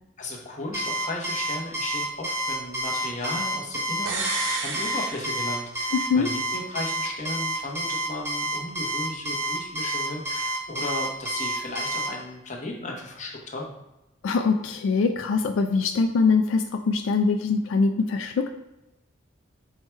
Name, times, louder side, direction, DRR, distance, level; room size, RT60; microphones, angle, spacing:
voice 1, 0.2-5.9 6.1-13.8, left 2 dB, 40° left, -1 dB, 0.7 m, -35 dB
Alarm, 0.7-12.1, right 1 dB, 15° right, 0.7 m, -29 dB
sound 1, 4.1-6.0 6.3-6.4, right 3 dB, 75° right, 0.6 m, -32 dB
voice 2, 5.9-6.3 14.2-18.5, left 4 dB, 85° left, 5 dB, 0.3 m, -23 dB
4.6 x 2.2 x 4.4 m, 0.94 s
head